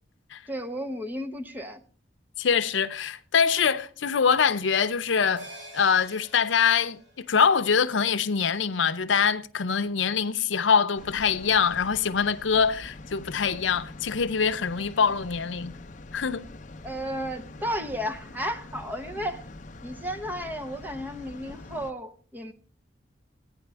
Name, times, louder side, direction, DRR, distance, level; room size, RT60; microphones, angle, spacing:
voice 1, 0.5-1.8 16.8-19.4 19.8-22.5, equal, 10° right, 0.7 m, -33 dB
voice 2, 2.4-5.5 5.7-7.0 7.3-15.7 16.1-16.5, left 6 dB, 85° left, 0.6 m, -24 dB
sound 1, 5.4-10.1 10.4-10.5, right 1 dB, 85° right, 5.3 m, -50 dB
sound 2, 10.9-21.9, left 2 dB, 40° left, 0.6 m, -44 dB
16.0 x 9.6 x 3.4 m
head